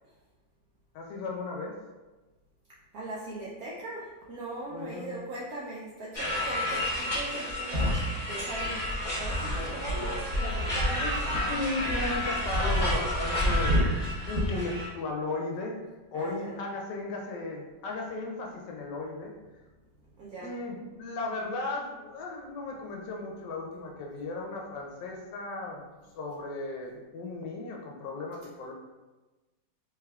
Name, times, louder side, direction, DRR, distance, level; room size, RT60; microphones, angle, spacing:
voice 1, 0.9-1.7 4.7-5.1 11.0-15.8 16.1-19.3 20.4-25.8 26.2-28.7, left 3 dB, 75° left, 0 dB, 1.1 m, -36 dB
voice 2, 2.9-10.8 16.1-16.6 20.2-20.5, right 2 dB, 75° right, -5 dB, 0.8 m, -40 dB
sound 1, 6.1-14.9, equal, 30° left, 1.1 m, -29 dB
3.4 x 3.4 x 2.3 m, 1.2 s
omnidirectional pair, 2.0 m